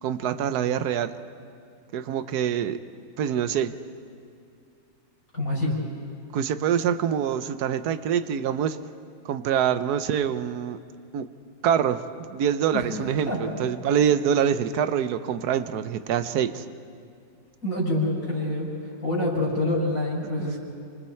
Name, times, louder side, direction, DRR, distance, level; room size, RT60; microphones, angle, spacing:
voice 1, 0.0-1.2 1.9-2.8 3.2-3.8 6.3-8.8 9.2-10.8 11.1-11.3 11.6-16.6 20.4-20.5, right 8 dB, 65° right, 12 dB, 1.2 m, -25 dB
voice 2, 5.3-5.8 12.7-12.9 13.3-13.4 17.6-18.7 19.0-20.6, left 1 dB, 50° left, -5 dB, 5.4 m, -26 dB
28.5 x 25.5 x 4.5 m, 2.5 s
omnidirectional pair, 1.9 m